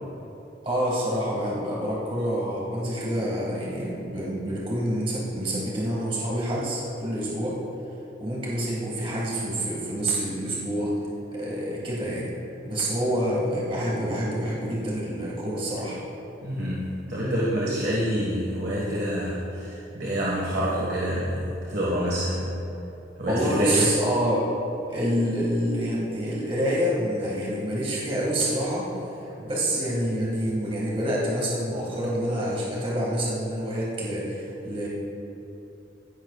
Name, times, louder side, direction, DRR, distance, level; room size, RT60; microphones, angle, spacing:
voice 1, 0.6-7.6 8.2-10.9 11.3-12.3 12.6-16.0 23.3-24.5 24.9-28.9 29.4-34.9, equal, 30° right, -5 dB, 2.0 m, -27 dB
voice 2, 16.4-22.5 23.2-23.9, equal, 55° right, -6 dB, 1.7 m, -27 dB
16.5 x 10.5 x 2.4 m, 2.9 s
head